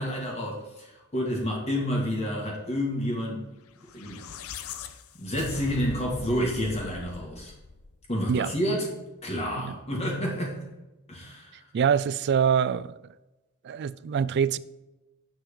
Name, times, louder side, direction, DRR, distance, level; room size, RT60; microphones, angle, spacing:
voice 1, 0.0-3.4 3.8-4.2 5.2-7.5 8.1-8.9 9.2-10.7 11.1-11.6, equal, 30° left, 1.9 m, -29 dB
sound 1, 3.8-8.2, left 5 dB, 75° left, 0.7 m, -41 dB
voice 2, 11.7-13.0 13.6-14.6, right 7 dB, 50° right, 0.3 m, -24 dB
7.2 x 5.8 x 5.3 m
head